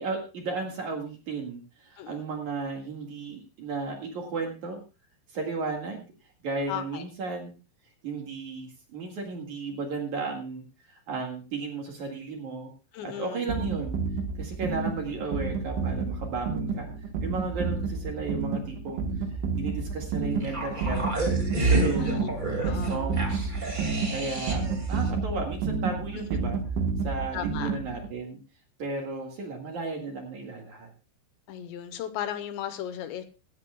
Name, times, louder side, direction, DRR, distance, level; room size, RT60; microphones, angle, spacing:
voice 1, 0.0-4.8 5.3-6.1 6.4-7.5 8.0-12.7 13.0-14.0 14.4-16.9 17.2-19.0 19.5-21.0 21.7-22.4 22.6-23.5 24.1-26.6 27.0-28.4 28.8-30.9, right 4 dB, 50° right, 2 dB, 2.7 m, -34 dB
voice 2, 6.7-7.0 12.9-13.5 22.0-22.3 22.6-23.1 26.4-26.5 27.3-27.7 31.5-33.3, left 10 dB, 75° left, 10 dB, 3.1 m, -36 dB
sound 1, 13.5-28.1, right 4 dB, 80° right, 3.6 m, -30 dB
sound 2, 20.4-24.8 25.1-25.2, right 2 dB, 30° right, 0.9 m, -29 dB
16.0 x 16.0 x 2.3 m, 0.32 s
omnidirectional pair, 5.3 m